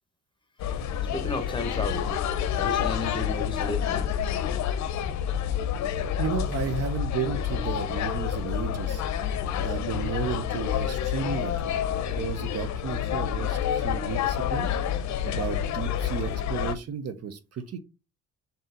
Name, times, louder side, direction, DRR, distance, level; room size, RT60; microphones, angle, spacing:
sound 1, 0.6-16.8, left 9 dB, 65° left, 0.6 m, -28 dB
voice 1, 1.1-2.2 2.5-4.1, left 2 dB, 15° left, 1.0 m, -33 dB
voice 2, 6.2-9.0 9.6-11.8 12.1-14.7 15.2-17.8, right 6 dB, 55° right, 0.7 m, -33 dB
3.9 x 2.8 x 3.7 m
cardioid pair, 90°, 30 cm